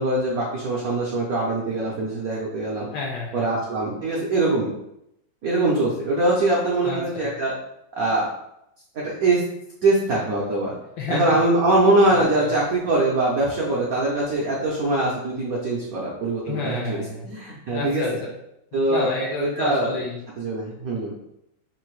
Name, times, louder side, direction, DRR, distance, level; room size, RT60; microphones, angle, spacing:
voice 1, 0.0-2.9 3.3-4.7 5.4-7.5 7.9-8.3 8.9-9.4 9.8-10.7 11.1-18.0 18.7-20.0 20.4-21.1, right 2 dB, 70° right, -4 dB, 0.8 m, -22 dB
voice 2, 2.9-3.5 6.8-7.3 11.0-11.4 12.1-12.5 16.4-17.3 17.7-18.3 18.9-20.2, left 3 dB, 70° left, -1 dB, 1.0 m, -30 dB
3.9 x 2.6 x 4.5 m, 0.81 s
omnidirectional pair, 2.4 m